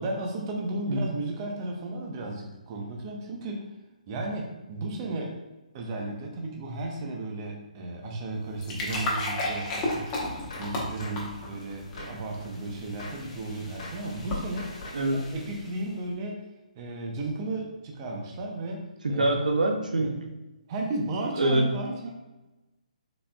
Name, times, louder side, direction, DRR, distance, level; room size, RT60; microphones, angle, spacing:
voice 1, 0.0-3.7 4.1-5.4 5.7-10.2 10.5-14.7 15.1-16.4 16.8-19.4 20.0-20.2 20.7-22.1, right 2 dB, 30° right, 0 dB, 0.7 m, -34 dB
sound 1, 8.3-15.9, left 1 dB, 20° left, 0.9 m, -35 dB
Gunshot gunfire, 8.9-9.2 9.9-10.2 10.5-11.3 12.0-12.3 13.0-13.3 13.8-14.1 14.6-15.1, left 2 dB, 55° left, 1.5 m, -43 dB
voice 2, 19.0-20.1 21.4-21.7, right 1 dB, 80° right, 3 dB, 0.6 m, -24 dB
4.1 x 3.3 x 2.3 m, 1.1 s
hypercardioid pair, 145°, 4 cm